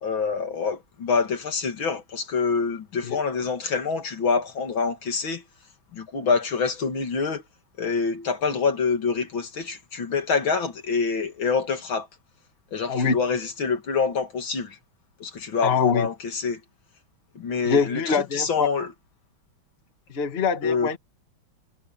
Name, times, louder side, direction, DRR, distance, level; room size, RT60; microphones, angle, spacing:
voice 1, 0.0-5.4 5.9-7.4 7.8-12.1 12.7-14.8 15.2-16.6 17.3-18.9 20.6-20.9, left 5 dB, 70° left, 3.1 m, -26 dB
voice 2, 15.6-16.1 17.6-18.7 20.1-21.0, left 5 dB, 30° left, 1.5 m, -24 dB
omnidirectional pair, 2.3 m